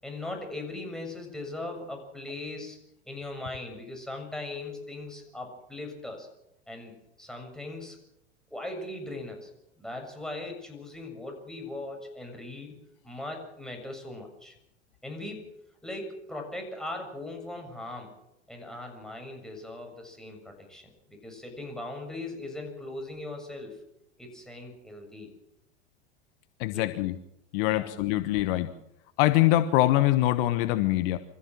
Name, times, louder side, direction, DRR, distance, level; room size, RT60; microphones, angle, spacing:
voice 1, 0.0-2.8 3.0-6.3 6.7-6.9 7.2-8.0 8.5-9.5 9.8-12.7 13.0-14.5 15.0-15.5 15.8-18.1 18.5-20.8 21.1-23.8 24.2-25.3 26.7-26.9 27.6-27.9, left 2 dB, ahead, 1 dB, 6.8 m, -39 dB
voice 2, 26.6-27.1 27.5-28.7 29.2-31.2, left 15 dB, 55° left, 10 dB, 1.3 m, -23 dB
25.5 x 14.5 x 7.6 m, 0.84 s
figure-of-eight pair, 85°, 35 cm